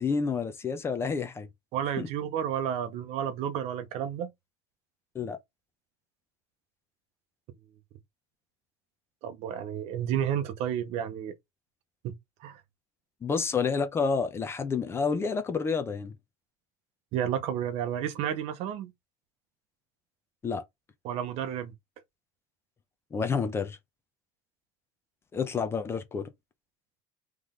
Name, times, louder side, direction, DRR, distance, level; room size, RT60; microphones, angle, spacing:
voice 1, 0.0-1.5 2.0-2.1 5.1-5.4 13.2-16.1 20.4-20.6 23.1-23.8 25.3-26.3, left 5 dB, 20° left, 0.7 m, -29 dB
voice 2, 1.7-4.3 9.2-11.3 12.0-12.6 17.1-18.9 21.0-21.7, right 9 dB, 55° right, 0.8 m, -31 dB
3.7 x 3.3 x 3.7 m
cardioid pair, 150°, 13 cm